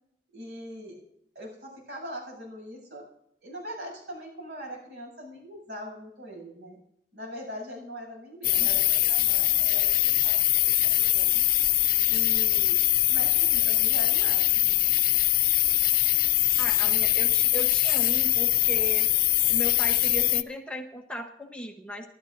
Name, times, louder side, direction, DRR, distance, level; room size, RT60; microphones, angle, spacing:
voice 1, 0.3-1.0 1.3-3.1 3.4-6.8 7.1-11.5 12.0-12.8 13.1-14.8, equal, 65° right, 0 dB, 7.9 m, -41 dB
sound 1, 8.4-20.4, left 15 dB, 55° left, 0.6 m, -23 dB
voice 2, 16.6-19.1 19.5-22.1, equal, 5° left, 1 dB, 1.0 m, -36 dB
29.5 x 12.5 x 2.6 m, 0.77 s
head